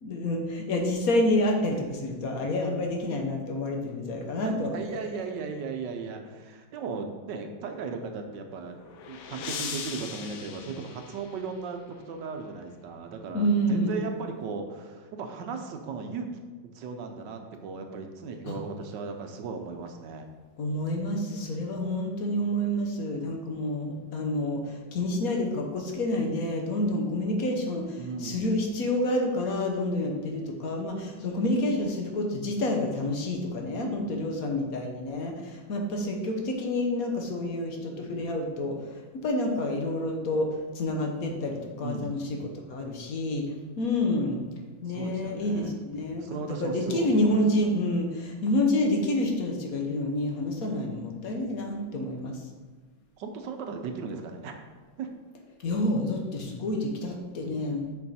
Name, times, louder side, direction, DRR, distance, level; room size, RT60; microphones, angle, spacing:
voice 1, 0.0-4.8 13.3-14.0 18.5-18.6 20.6-38.8 39.2-40.5 40.7-43.4 43.8-44.4 44.8-46.3 46.6-52.4 55.6-57.8, left 1 dB, 55° left, 2 dB, 1.2 m, -28 dB
voice 2, 4.4-8.8 9.1-16.3 16.7-20.3 28.0-28.4 30.9-31.1 34.1-34.5 41.8-42.4 44.9-45.8 46.2-47.4 47.7-47.8 53.2-54.5 55.0-55.1, right 5 dB, 70° right, 5 dB, 1.3 m, -37 dB
sound 1, 8.4-11.7, left 6 dB, 80° left, 1.5 m, -40 dB
6.9 x 5.5 x 4.2 m, 1.3 s
omnidirectional pair, 2.1 m